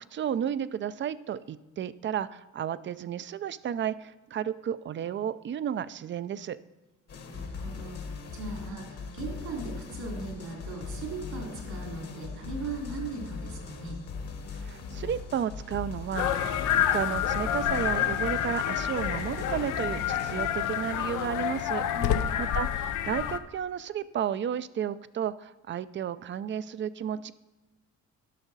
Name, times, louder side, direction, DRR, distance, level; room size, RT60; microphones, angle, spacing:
voice 1, 0.1-6.6 14.5-21.8 22.4-27.3, right 9 dB, 40° right, 16 dB, 0.4 m, -33 dB
sound 1, 7.1-20.5, left 4 dB, 55° left, 1.3 m, -39 dB
voice 2, 7.3-14.0 21.9-22.3, right 3 dB, 75° right, 0 dB, 2.9 m, -38 dB
sound 2, 16.2-23.4, left 10 dB, 90° left, 0.6 m, -28 dB
11.5 x 6.1 x 4.0 m, 1.1 s
cardioid pair, 90°, 30 cm